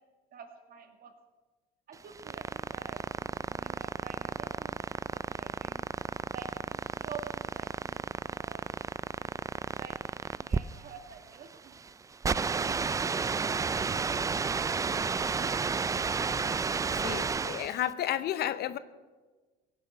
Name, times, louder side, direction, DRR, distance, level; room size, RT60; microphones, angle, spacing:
voice 1, 0.3-1.1 1.9-4.8 5.1-5.9 6.3-8.7 9.2-9.3 9.7-11.8 12.2-13.1, right 6 dB, 50° right, 5 dB, 2.2 m, -48 dB
sound 1, 1.9-17.8, right 5 dB, 15° right, 0.4 m, -32 dB
voice 2, 17.0-18.8, left 11 dB, 55° left, 15 dB, 0.7 m, -32 dB
17.0 x 8.6 x 6.9 m, 1.3 s
supercardioid pair, 100°, 19 cm